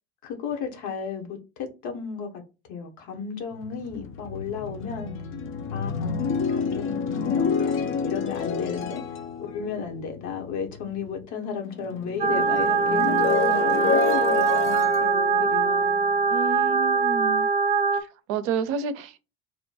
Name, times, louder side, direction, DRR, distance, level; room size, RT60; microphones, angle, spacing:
voice 1, 0.2-2.4 2.7-5.1 5.7-6.2 6.5-16.0, left 6 dB, 60° left, 1.1 m, -34 dB
sound 1, 3.5-11.3 11.6-16.7, left 6 dB, 40° left, 0.5 m, -29 dB
sound 2, 12.2-18.0, right 5 dB, 25° right, 0.4 m, -22 dB
voice 2, 16.3-17.5 18.0-19.2, right 7 dB, 70° right, 0.6 m, -30 dB
3.0 x 2.2 x 3.9 m
hypercardioid pair, 65°, 33 cm